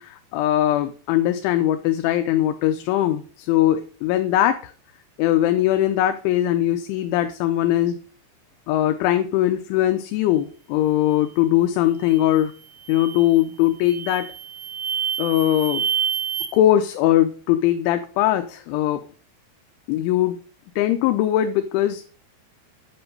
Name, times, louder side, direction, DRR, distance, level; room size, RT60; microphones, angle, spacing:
voice 1, 0.0-4.7 5.2-8.0 8.7-12.5 12.9-14.3 15.2-15.9 16.5-19.0 19.9-20.4 20.8-22.0, left 13 dB, 85° left, 8 dB, 3.1 m, -20 dB
sound 1, 12.0-12.3 12.8-13.3 13.8-16.5, right 8 dB, 80° right, 1.2 m, -28 dB
8.7 x 8.4 x 5.3 m, 0.41 s
omnidirectional pair, 5.4 m